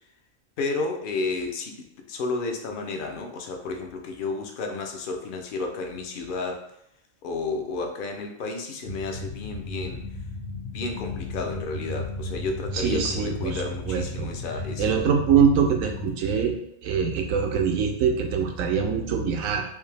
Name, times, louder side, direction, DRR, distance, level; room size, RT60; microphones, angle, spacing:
voice 1, 0.6-6.7 7.2-10.0 10.7-15.1, left 3 dB, 60° left, 3 dB, 0.5 m, -32 dB
sound 1, 8.8-16.1, left 2 dB, 80° left, 1.3 m, -35 dB
voice 2, 12.7-14.3 14.8-16.5 16.8-19.6, right 6 dB, 80° right, 3 dB, 1.0 m, -23 dB
3.3 x 2.8 x 3.2 m, 0.79 s
omnidirectional pair, 1.4 m